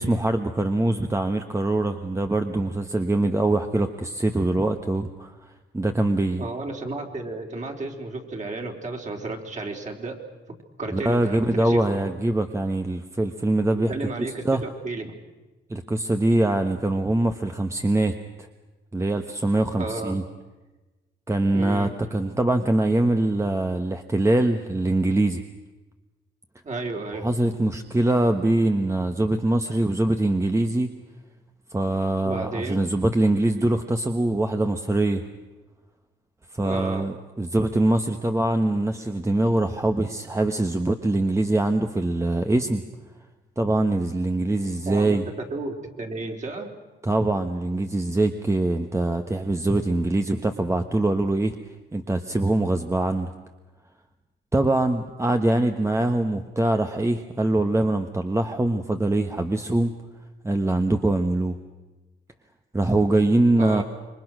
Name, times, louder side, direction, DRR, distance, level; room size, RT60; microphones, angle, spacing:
voice 1, 0.0-5.3 5.7-6.4 10.9-13.9 14.4-14.6 15.7-18.5 18.9-20.2 21.3-25.4 27.2-30.9 31.7-35.2 36.5-42.8 43.6-45.2 47.0-51.5 51.9-53.3 54.5-59.9 60.4-61.6 62.7-63.8, right 2 dB, 15° right, 6 dB, 1.3 m, -23 dB
voice 2, 6.4-10.2 10.8-12.0 13.7-15.1 19.8-20.2 21.5-21.9 26.6-27.3 32.2-32.8 36.6-37.1 44.9-45.2 45.5-46.7 63.6-63.8, right 3 dB, 35° right, 2 dB, 4.1 m, -32 dB
27.0 x 23.0 x 6.2 m, 1.2 s
cardioid pair, 90°, 20 cm